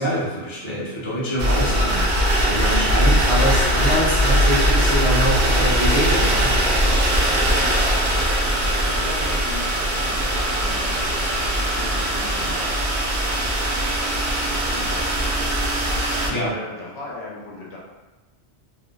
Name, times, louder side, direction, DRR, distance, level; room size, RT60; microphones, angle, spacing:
voice 1, 0.0-2.1 2.4-6.5 16.3-16.5, equal, 30° left, -6 dB, 0.6 m, -24 dB
sound 1, 1.4-16.3, equal, 55° right, 0.6 m, -20 dB
voice 2, 7.4-10.9 11.3-13.4 14.4-15.5 16.2-17.8, left 2 dB, 70° left, -4 dB, 0.9 m, -37 dB
2.5 x 2.0 x 3.5 m, 1.2 s
omnidirectional pair, 1.2 m